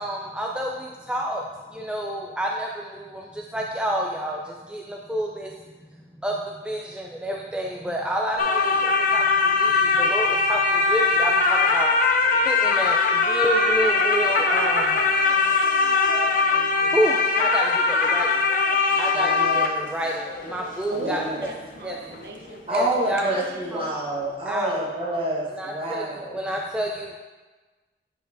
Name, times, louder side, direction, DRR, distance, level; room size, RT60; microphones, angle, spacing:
voice 1, 0.0-1.4 1.7-5.5 6.2-11.9 12.4-15.0 16.9-18.4 19.0-21.2 21.8-22.0 22.7-23.3 23.7-23.9 24.5-24.8 25.5-27.2, equal, 5° right, -1 dB, 0.3 m, -29 dB
sound 1, 8.4-22.2 22.5-22.6, left 4 dB, 45° left, 0.5 m, -21 dB
voice 2, 16.5-16.9 19.1-19.9 21.0-21.2 22.7-26.4, right 1 dB, 30° right, -4 dB, 1.2 m, -28 dB
voice 3, 20.9-23.9, right 1 dB, 65° right, 0 dB, 0.9 m, -36 dB
8.7 x 5.3 x 2.6 m, 1.3 s
head